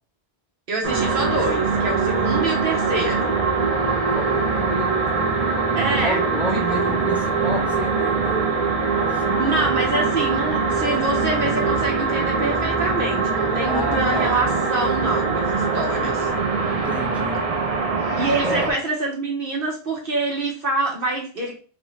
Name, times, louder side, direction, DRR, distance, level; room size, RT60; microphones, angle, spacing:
voice 1, 0.7-3.4 5.7-7.0 9.4-16.3 18.2-21.6, right 2 dB, 65° right, 1.0 m, -26 dB
sound 1, 0.8-18.7, right 4 dB, 40° right, 0.7 m, -22 dB
voice 2, 3.8-5.4 6.0-9.5 13.6-14.3 15.7-17.5 18.4-18.8, equal, ahead, 0.5 m, -32 dB
3.1 x 2.8 x 3.1 m
omnidirectional pair, 1.1 m